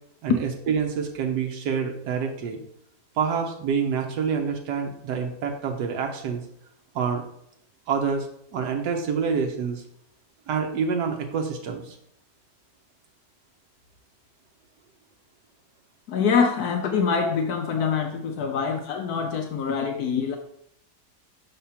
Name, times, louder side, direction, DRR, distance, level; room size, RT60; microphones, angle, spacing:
voice 1, 0.2-2.6 3.2-6.4 6.9-7.2 7.9-8.3 8.5-9.8 10.5-12.0, right 6 dB, 90° right, 2 dB, 1.4 m, -27 dB
voice 2, 16.1-20.4, left 6 dB, 70° left, 4 dB, 1.1 m, -25 dB
5.9 x 3.7 x 5.6 m, 0.71 s
omnidirectional pair, 1.7 m